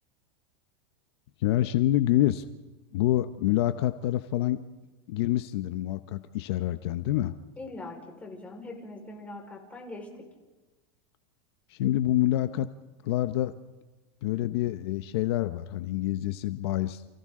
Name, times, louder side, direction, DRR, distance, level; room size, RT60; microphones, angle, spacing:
voice 1, 1.4-2.4 2.9-4.6 5.1-7.3 11.7-12.7 13.0-13.5 14.2-17.1, left 14 dB, 65° left, 10 dB, 0.9 m, -27 dB
voice 2, 7.6-10.1, left 2 dB, 10° left, 0 dB, 4.7 m, -42 dB
30.0 x 28.5 x 3.8 m, 1.2 s
supercardioid pair, 150°, 15 cm